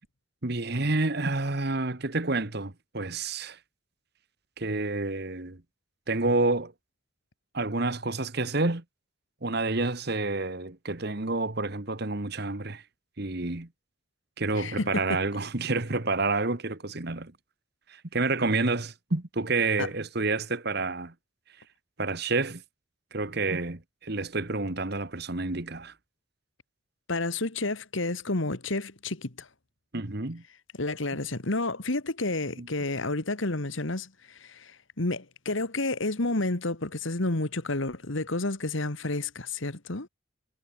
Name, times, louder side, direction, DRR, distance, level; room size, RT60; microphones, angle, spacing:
voice 1, 0.4-3.6 4.6-5.6 6.1-6.7 7.5-8.8 9.4-12.8 13.2-13.7 14.4-17.3 17.9-21.1 22.0-22.6 23.1-25.9 29.9-30.4 32.6-32.7, right 3 dB, 50° right, 1.5 m, -29 dB
voice 2, 14.5-15.2 19.8-19.9 27.1-29.5 30.8-40.1, left 2 dB, 65° left, 1.9 m, -30 dB
head